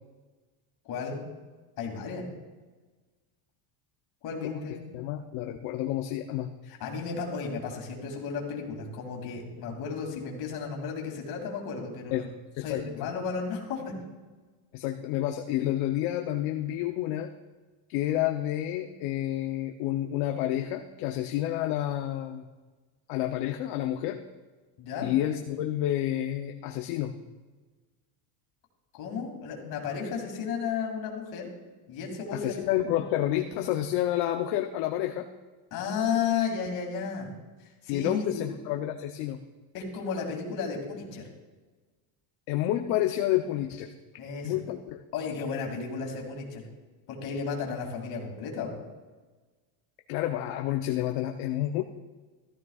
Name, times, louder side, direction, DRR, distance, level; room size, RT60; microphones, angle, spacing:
voice 1, 0.9-1.2 1.8-2.2 4.2-4.8 6.7-12.3 12.6-13.9 24.8-25.1 28.9-31.5 31.9-32.6 35.7-37.3 37.6-38.4 39.7-41.3 44.2-44.6 45.1-46.6 47.1-48.8, left 6 dB, 50° left, 0 dB, 2.7 m, -33 dB
voice 2, 4.9-6.5 12.1-12.3 12.6-13.1 14.7-17.3 17.9-22.5 23.1-24.2 25.0-27.1 32.3-35.3 37.9-39.4 42.5-43.9 44.4-44.8 50.1-51.8, left 13 dB, 70° left, 4 dB, 0.8 m, -29 dB
15.0 x 13.5 x 2.4 m, 1.3 s
cardioid pair, 165°, 48 cm